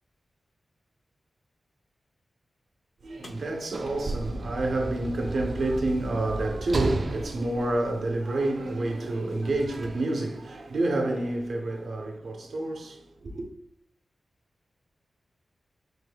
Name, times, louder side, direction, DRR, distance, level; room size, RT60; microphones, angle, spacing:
voice 1, 3.0-13.5, right 2 dB, 65° right, 0.9 m, -29 dB
sound 1, 3.2-5.4 7.3-7.4 8.2-8.4 8.9-10.4, left 1 dB, 50° left, 0.8 m, -49 dB
Sliding door / Slam, 3.3-8.7 9.6-9.7, right 2 dB, 40° right, 0.4 m, -34 dB
5.2 x 4.1 x 2.3 m
wide cardioid pair, 145°, 0 cm